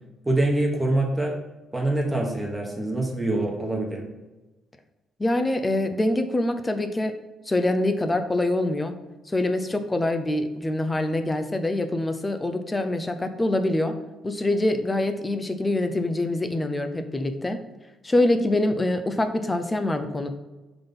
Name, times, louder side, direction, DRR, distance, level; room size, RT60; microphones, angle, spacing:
voice 1, 0.2-1.3 1.7-4.0, right 2 dB, 15° right, -1 dB, 1.2 m, -25 dB
voice 2, 5.2-7.1 7.5-8.9 9.3-14.0 14.2-17.6 18.0-20.3, left 1 dB, 20° left, 8 dB, 0.6 m, -25 dB
5.2 x 4.0 x 5.4 m, 1.1 s
cardioid pair, 90°, 0 cm